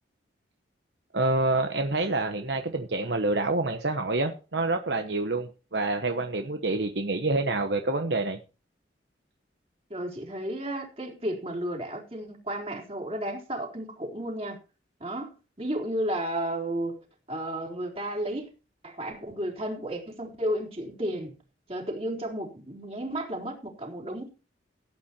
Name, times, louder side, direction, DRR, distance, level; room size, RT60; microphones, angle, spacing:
voice 1, 1.1-8.4, right 2 dB, 65° right, 1.1 m, -27 dB
voice 2, 9.9-14.6 15.0-15.3 15.6-17.0 17.3-18.5 18.8-21.3 21.7-24.3, right 1 dB, 35° right, 4.0 m, -33 dB
16.5 x 8.9 x 4.5 m
head